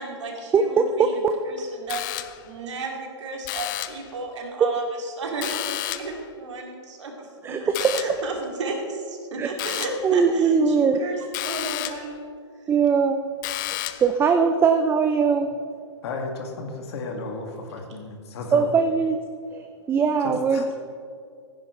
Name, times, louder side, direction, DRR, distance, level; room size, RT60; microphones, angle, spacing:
voice 1, 0.0-12.2, right 3 dB, 75° right, 1 dB, 2.6 m, -33 dB
voice 2, 0.5-1.3 7.4-7.9 9.4-9.5 10.0-11.0 12.7-13.2 13.7-15.5 18.5-19.2 19.5-20.7, right 5 dB, 15° right, 6 dB, 0.5 m, -21 dB
sound 1, 1.9-2.6 3.4-4.1 5.4-6.2 7.7-8.3 9.6-10.1 11.3-12.1 13.4-14.2, left 15 dB, 45° left, 0.6 m, -31 dB
voice 3, 16.0-18.7 20.2-20.6, left 3 dB, 60° left, 3 dB, 2.1 m, -33 dB
15.0 x 10.5 x 3.2 m, 2.3 s
hypercardioid pair, 120°, 15 cm